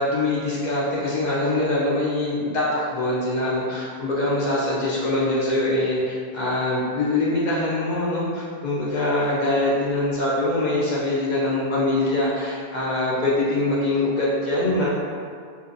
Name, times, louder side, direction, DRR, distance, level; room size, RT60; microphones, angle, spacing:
voice 1, 0.0-14.9, left 2 dB, 55° left, -6 dB, 0.6 m, -23 dB
2.8 x 2.1 x 2.4 m, 2.1 s
omnidirectional pair, 1.0 m